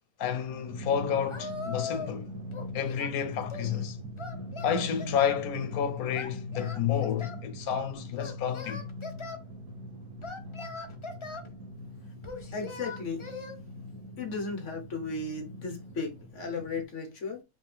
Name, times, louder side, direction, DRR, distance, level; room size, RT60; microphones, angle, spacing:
voice 1, 0.2-2.3 2.7-4.0 4.6-8.9, left 8 dB, 80° left, 1.3 m, -30 dB
Drum, 0.7-16.8, left 1 dB, 85° right, 1.7 m, -42 dB
Singing, 1.3-2.2 2.5-3.7 4.2-5.4 6.1-7.4 8.2-9.4 10.2-11.5 12.2-13.6, left 4 dB, 30° left, 0.6 m, -40 dB
voice 2, 12.0-13.3 14.1-17.4, left 4 dB, 55° left, 1.4 m, -36 dB
5.2 x 2.8 x 3.5 m
omnidirectional pair, 1.5 m